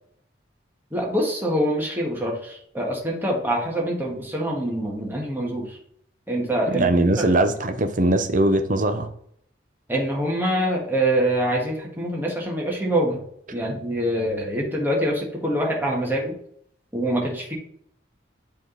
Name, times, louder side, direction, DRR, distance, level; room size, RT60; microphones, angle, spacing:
voice 1, 0.9-5.8 6.3-6.9 7.2-7.3 9.9-13.2 13.5-16.3 16.9-17.5, right 1 dB, 10° right, -3 dB, 1.5 m, -25 dB
voice 2, 6.7-9.1, right 2 dB, 45° right, 8 dB, 0.7 m, -20 dB
8.6 x 3.7 x 3.9 m, 0.66 s
head